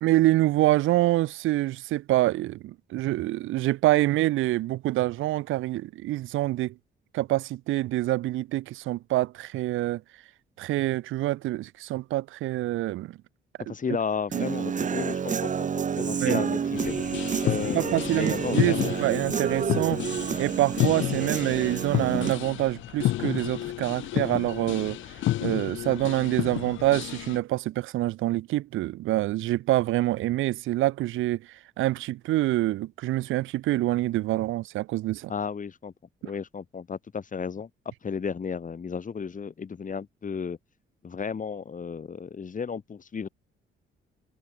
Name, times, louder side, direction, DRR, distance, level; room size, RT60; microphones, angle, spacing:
voice 1, 0.0-6.7 7.1-10.0 10.6-13.2 13.7-13.8 14.3-14.4 16.2-16.4 17.7-20.0 20.4-35.3, right 16 dB, 85° right, 0.8 m, -26 dB
voice 2, 13.7-16.9 17.4-18.9 35.3-35.9 36.2-37.7 38.0-40.6 41.0-43.3, left 6 dB, 40° left, 6.2 m, -33 dB
Human voice / Guitar, 14.3-22.3, right 7 dB, 40° right, 1.2 m, -29 dB
sound 1, 16.8-27.4, left 14 dB, 80° left, 0.9 m, -31 dB
cardioid pair, 90°, 20 cm